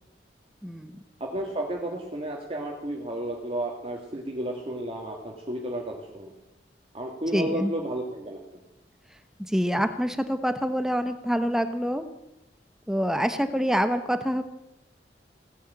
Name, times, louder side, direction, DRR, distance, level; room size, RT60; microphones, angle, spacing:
voice 1, 0.6-1.0 7.3-7.7 9.4-12.0 12.9-14.4, equal, 5° right, 10 dB, 0.9 m, -26 dB
voice 2, 1.2-6.3 6.9-8.4, right 1 dB, 35° right, 0 dB, 1.9 m, -32 dB
16.5 x 10.0 x 8.4 m, 0.90 s
head